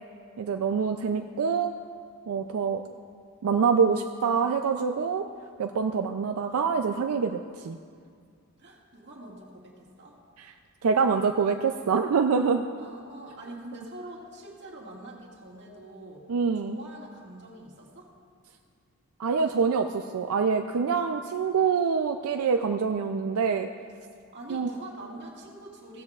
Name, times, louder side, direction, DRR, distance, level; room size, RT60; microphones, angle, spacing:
voice 1, 0.4-1.7 2.3-2.8 3.4-5.2 5.6-7.8 10.4-10.5 10.8-12.7 16.3-16.8 19.2-23.7 24.5-24.7, right 5 dB, 90° right, 6 dB, 0.4 m, -25 dB
voice 2, 8.6-10.2 12.8-16.2 16.6-18.1 24.3-26.0, right 1 dB, 55° right, -3 dB, 2.0 m, -44 dB
16.0 x 13.5 x 2.4 m, 2.2 s
head